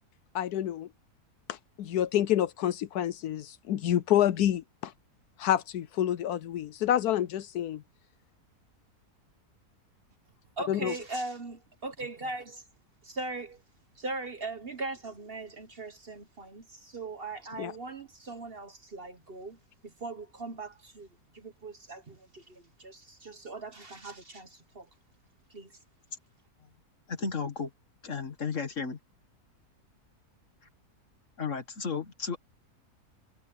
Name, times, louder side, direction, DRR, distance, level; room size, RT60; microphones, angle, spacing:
voice 1, 0.3-0.9 1.5-4.9 5.4-7.8 10.7-10.9 17.6-17.7, left 11 dB, 75° left, 1.1 m, -28 dB
voice 2, 10.6-12.5 13.0-13.6 13.9-21.1 21.3-24.9 25.5-25.7, right 3 dB, 40° right, 1.2 m, -40 dB
voice 3, 27.1-27.7 28.0-29.0 31.4-32.4, left 5 dB, 50° left, 2.2 m, -33 dB
omnidirectional pair, 1.7 m